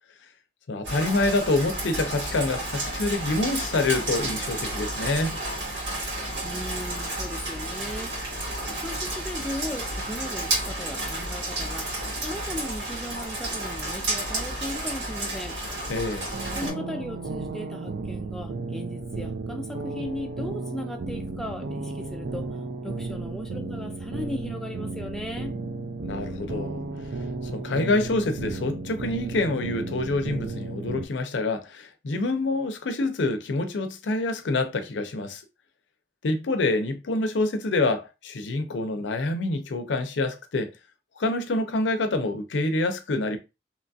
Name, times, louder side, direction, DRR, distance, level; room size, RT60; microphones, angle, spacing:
voice 1, 0.7-5.4 15.9-16.3 26.0-26.8 27.5-35.4 36.2-40.7 41.2-43.4, left 2 dB, 80° left, 0.5 m, -26 dB
Rain, 0.8-16.7, right 1 dB, 85° right, 1.7 m, -31 dB
voice 2, 6.4-8.4 8.7-15.6 16.5-22.6 22.8-25.6, left 1 dB, ahead, 0.4 m, -37 dB
sound 1, 16.3-31.0, right 3 dB, 65° right, 0.4 m, -34 dB
2.9 x 2.3 x 2.6 m
head